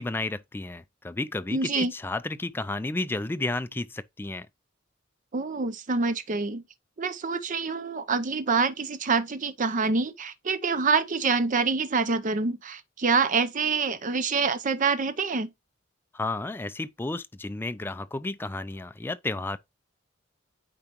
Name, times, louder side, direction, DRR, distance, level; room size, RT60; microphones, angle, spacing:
voice 1, 0.0-4.5 16.1-19.6, left 2 dB, 10° left, 0.3 m, -32 dB
voice 2, 1.5-1.9 5.3-6.6 7.0-15.5, right 4 dB, 40° right, 0.6 m, -26 dB
8.8 x 4.5 x 2.9 m
head